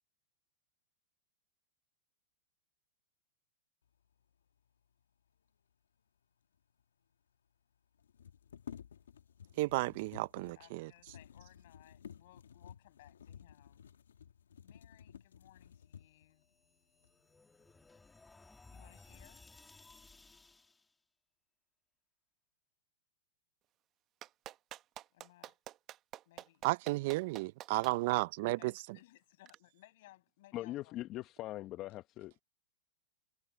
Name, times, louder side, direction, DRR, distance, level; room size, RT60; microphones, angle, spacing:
sound 1, 6.5-6.6 6.8-6.9 8.0-16.3 17.0-17.1 17.6-18.2 18.6-19.1, left 8 dB, 85° left, 1.8 m, -54 dB
voice 1, 9.6-10.9 26.6-28.7, right 21 dB, 60° right, 0.4 m, -33 dB
voice 2, 10.5-13.9 14.6-16.5 18.7-19.4 25.1-25.6 26.2-26.7 28.4-31.0, left 17 dB, 65° left, 6.7 m, -62 dB
sound 2, 16.4-20.9, left 3 dB, 10° left, 2.0 m, -59 dB
Clapping, 24.2-27.9 29.5-29.6, right 13 dB, 35° right, 0.9 m, -48 dB
voice 3, 30.5-32.4, left 15 dB, 40° left, 1.1 m, -41 dB
hypercardioid pair, 110°, 0 cm